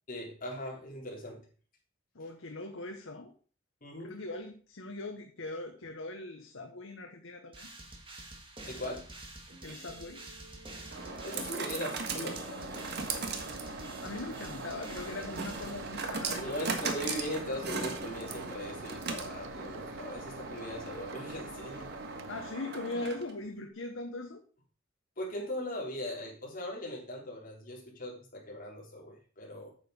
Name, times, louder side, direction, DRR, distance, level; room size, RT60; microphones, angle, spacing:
voice 1, 0.1-1.5 3.8-4.1 8.7-9.1 11.2-13.1 16.4-21.9 25.2-29.7, left 1 dB, 45° left, -2 dB, 3.9 m, -40 dB
voice 2, 2.1-3.3 4.0-7.7 9.6-10.2 14.0-16.7 22.3-24.4, left 2 dB, 85° left, 4 dB, 1.0 m, -40 dB
sound 1, 7.5-16.3, right 2 dB, 25° right, 2.0 m, -48 dB
sound 2, 9.5-23.5, right 3 dB, 60° right, 1.6 m, -39 dB
sound 3, 12.6-22.6, right 5 dB, 85° right, 0.5 m, -49 dB
8.8 x 7.2 x 5.2 m, 0.41 s
head